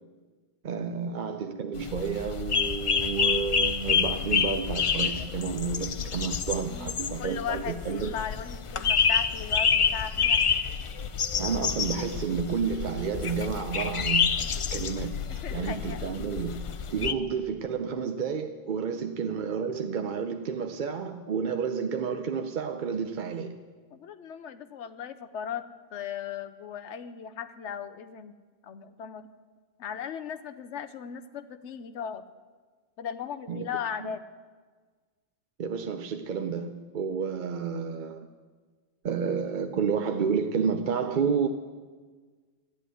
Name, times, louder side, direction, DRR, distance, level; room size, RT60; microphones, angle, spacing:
voice 1, 0.6-8.1 11.4-14.3 14.7-23.6 33.5-33.7 34.0-34.1 35.6-38.3 39.0-41.5, right 6 dB, 50° right, 0.7 m, -30 dB
sound 1, 1.7-17.1, left 6 dB, 50° left, 0.3 m, -28 dB
voice 2, 6.6-10.4 14.4-14.6 15.3-16.0 18.9-19.1 23.9-28.3 28.6-29.3 29.8-32.2 33.0-34.2, left 8 dB, 85° left, 1.1 m, -37 dB
12.5 x 8.5 x 9.2 m
omnidirectional pair, 1.2 m